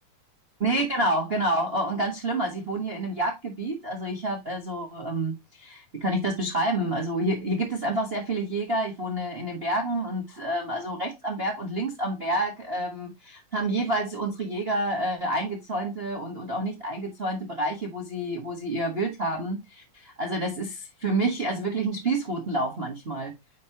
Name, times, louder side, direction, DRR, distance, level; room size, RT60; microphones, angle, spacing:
voice 1, 0.6-23.3, right 1 dB, 45° right, 0.7 m, -28 dB
9.3 x 4.2 x 2.9 m
omnidirectional pair, 3.6 m